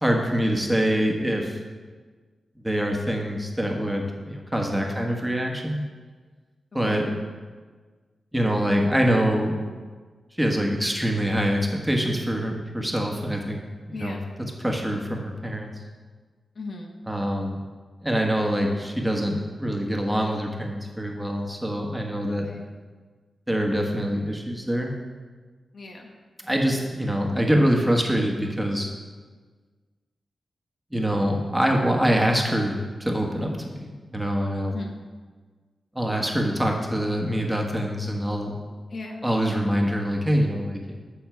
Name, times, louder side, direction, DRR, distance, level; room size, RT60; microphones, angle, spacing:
voice 1, 0.0-1.5 2.6-5.8 6.7-7.1 8.3-9.6 10.4-13.6 13.9-14.2 14.6-15.7 17.1-17.6 18.0-22.5 23.5-24.9 26.4-28.9 30.9-34.7 35.9-38.5 39.2-41.0, equal, 10° right, 1 dB, 1.4 m, -24 dB
voice 2, 13.9-14.2 16.6-16.9 22.3-22.7 25.7-26.1 34.7-35.0 38.9-39.2, left 2 dB, 65° left, 1 dB, 1.2 m, -37 dB
7.0 x 6.9 x 4.6 m, 1.4 s
cardioid pair, 50°, 0 cm